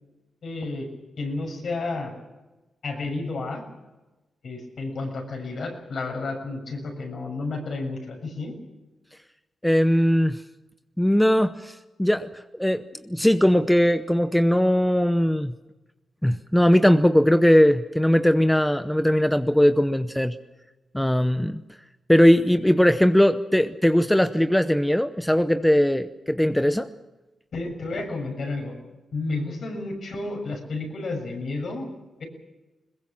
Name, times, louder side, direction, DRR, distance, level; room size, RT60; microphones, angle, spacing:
voice 1, 0.4-0.9 1.2-2.1 2.8-3.6 4.4-8.5 27.5-28.8 29.1-31.9, left 3 dB, 60° left, 2 dB, 6.9 m, -31 dB
voice 2, 9.6-10.4 11.0-12.3 12.6-15.5 16.2-20.3 20.9-21.6 22.1-26.9, equal, 5° left, 10 dB, 0.8 m, -20 dB
22.0 x 21.0 x 7.4 m, 1.1 s
cardioid pair, 90°, 0 cm